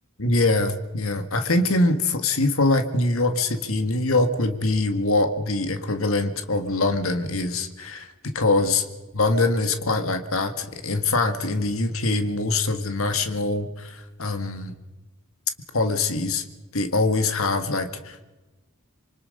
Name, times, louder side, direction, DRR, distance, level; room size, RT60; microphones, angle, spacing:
voice 1, 0.2-8.8 9.1-14.7 15.7-16.4 16.7-18.2, left 2 dB, 70° left, 8 dB, 1.8 m, -23 dB
26.0 x 24.0 x 5.4 m, 1.1 s
head